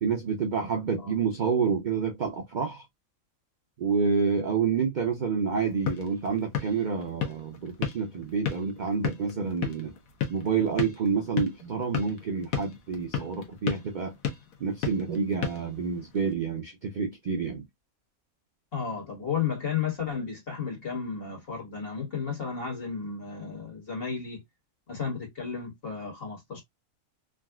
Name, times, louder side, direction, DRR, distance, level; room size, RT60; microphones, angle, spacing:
voice 1, 0.0-2.9 3.8-9.9 10.3-14.1 14.6-17.7, right 5 dB, 75° right, 0.4 m, -28 dB
sound 1, 5.5-16.3, left 7 dB, 70° left, 1.2 m, -35 dB
voice 2, 18.7-24.4 24.9-26.6, left 6 dB, 40° left, 1.7 m, -33 dB
3.6 x 2.3 x 2.2 m
omnidirectional pair, 1.5 m